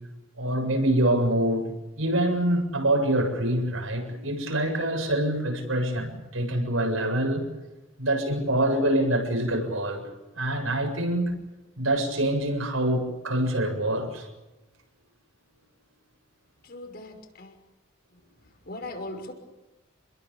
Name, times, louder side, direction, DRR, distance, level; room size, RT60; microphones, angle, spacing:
voice 1, 0.4-1.6 2.0-7.5 8.0-10.0 10.3-11.4 11.8-14.3, right 1 dB, 75° right, 7.5 m, -25 dB
voice 2, 16.6-17.6 18.7-19.3, left 2 dB, 45° left, 6.0 m, -39 dB
29.0 x 22.0 x 7.4 m
head